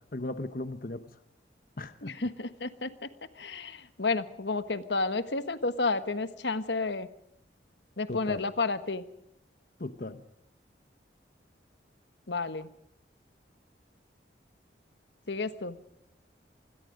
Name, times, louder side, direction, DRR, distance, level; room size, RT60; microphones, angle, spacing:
voice 1, 0.1-1.0 1.8-2.1 8.1-8.4 9.8-10.2, left 2 dB, 50° left, 11 dB, 1.0 m, -36 dB
voice 2, 2.0-2.9 3.4-7.1 8.0-9.0 12.3-12.7 15.3-15.8, left 3 dB, 80° left, 12 dB, 1.4 m, -31 dB
27.0 x 21.0 x 5.2 m, 0.77 s
head